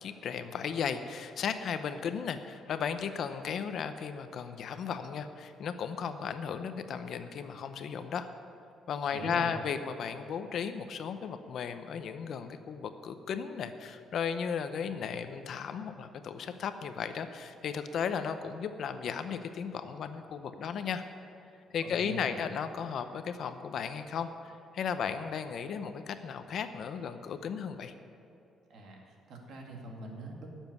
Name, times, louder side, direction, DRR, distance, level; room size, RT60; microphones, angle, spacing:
voice 1, 0.0-8.3 8.9-21.0 21.7-27.9, left 7 dB, 50° left, 9 dB, 0.7 m, -35 dB
voice 2, 9.1-9.6 21.8-22.5 28.7-30.5, right 2 dB, 55° right, 1 dB, 2.2 m, -43 dB
12.5 x 7.2 x 9.4 m, 2.8 s
cardioid pair, 170°, 0 cm